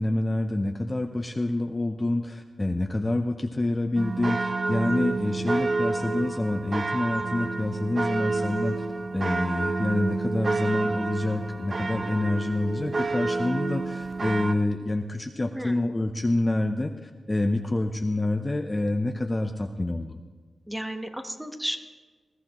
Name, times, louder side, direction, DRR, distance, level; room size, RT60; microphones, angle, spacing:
voice 1, 0.0-8.9 9.1-20.2, left 2 dB, 20° left, 5 dB, 0.6 m, -27 dB
sound 1, 4.0-14.5, right 3 dB, 40° right, 0.6 m, -29 dB
voice 2, 20.7-21.8, equal, 5° right, 6 dB, 1.1 m, -33 dB
20.0 x 14.5 x 3.0 m, 1.4 s
wide cardioid pair, 100°, 0 cm